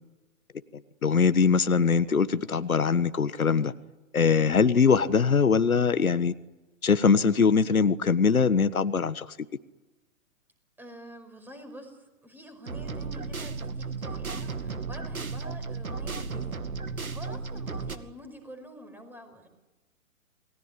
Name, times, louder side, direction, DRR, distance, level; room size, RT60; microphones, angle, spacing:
voice 1, 1.0-3.7 4.1-6.3 6.8-9.3, left 5 dB, 90° left, 1.4 m, -22 dB
voice 2, 4.2-4.6 10.8-19.5, equal, 5° right, 5.3 m, -47 dB
sound 1, 12.7-18.0, right 4 dB, 90° right, 2.5 m, -34 dB
29.0 x 20.0 x 9.8 m
hypercardioid pair, 130°, 41 cm